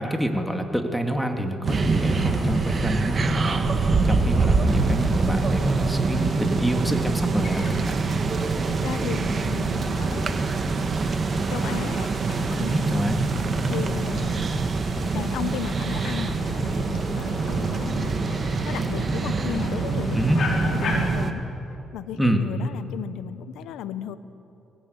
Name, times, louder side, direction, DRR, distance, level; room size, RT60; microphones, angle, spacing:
voice 1, 0.0-8.0 12.7-13.2 20.1-20.4 22.2-22.4, equal, ahead, 4 dB, 2.6 m, -27 dB
sound 1, 1.6-21.1, left 3 dB, 50° left, 5.8 m, -39 dB
sound 2, 1.6-21.3, right 4 dB, 40° right, 1.8 m, -25 dB
voice 2, 8.7-10.6 11.5-12.1 12.6-13.0 13.7-14.5 15.1-21.4 21.9-24.2, left 10 dB, 85° left, 12 dB, 1.0 m, -35 dB
23.5 x 18.5 x 9.7 m, 3.0 s
cardioid pair, 90°, 0 cm